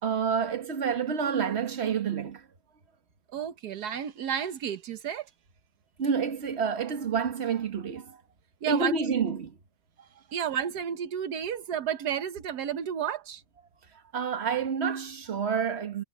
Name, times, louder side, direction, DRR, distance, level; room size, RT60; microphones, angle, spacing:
voice 1, 0.0-2.5 6.0-8.2 8.7-9.5 14.1-16.0, right 6 dB, 45° right, 1.7 m, -28 dB
voice 2, 3.3-5.3 8.6-9.0 10.3-13.4, right 9 dB, 85° right, 1.5 m, -31 dB
omnidirectional pair, 1.6 m